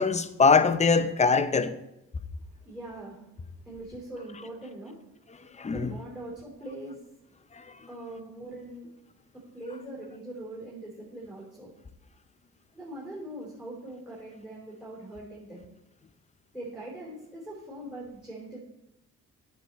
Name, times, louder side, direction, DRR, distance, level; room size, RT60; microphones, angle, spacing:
voice 1, 0.0-1.8 5.6-5.9 7.5-7.6, left 4 dB, 25° left, 0.6 m, -22 dB
voice 2, 2.6-5.0 5.3-7.0 7.9-8.9 9.3-11.7 12.7-15.6 16.5-18.6, right 1 dB, 5° right, 3.1 m, -42 dB
9.0 x 6.4 x 4.2 m
cardioid pair, 90°, 30 cm